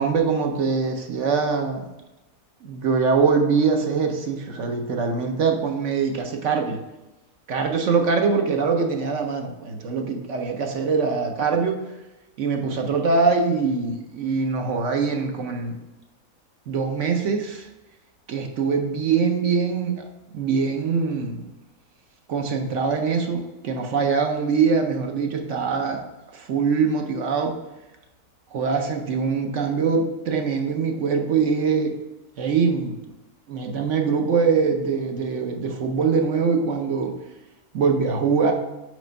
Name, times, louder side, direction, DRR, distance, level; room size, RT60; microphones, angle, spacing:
voice 1, 0.0-1.9 2.6-6.8 7.5-11.8 12.4-15.8 16.7-17.7 18.3-20.0 20.3-21.4 22.3-26.0 26.3-27.5 28.5-31.9 32.4-33.0 33.5-37.1 37.7-38.5, right 5 dB, 60° right, 3 dB, 0.9 m, -23 dB
5.0 x 4.3 x 5.2 m, 1.0 s
omnidirectional pair, 1.6 m